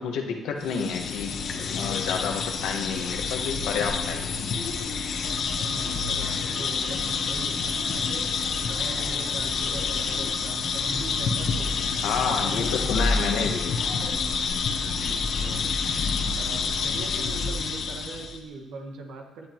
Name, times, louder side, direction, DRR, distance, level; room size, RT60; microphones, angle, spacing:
voice 1, 0.0-1.3 1.6-4.4 12.0-13.8, left 5 dB, 85° left, 2 dB, 1.5 m, -29 dB
sound 1, 0.6-18.4, left 5 dB, 65° left, 1.2 m, -28 dB
voice 2, 5.7-13.4 14.7-16.0 16.3-19.5, right 3 dB, 90° right, 2 dB, 1.7 m, -41 dB
17.5 x 9.9 x 3.1 m, 1.1 s
cardioid pair, 90°, 0 cm